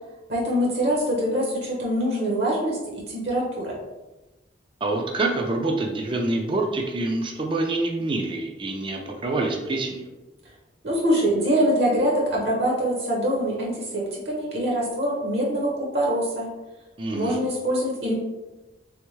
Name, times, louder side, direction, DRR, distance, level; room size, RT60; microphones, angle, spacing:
voice 1, 0.3-3.8 10.8-16.5 17.1-18.1, equal, 60° right, -3 dB, 0.8 m, -24 dB
voice 2, 4.8-10.1 17.0-17.4, right 2 dB, 25° right, 1 dB, 0.4 m, -26 dB
3.5 x 3.4 x 3.1 m, 1.1 s
head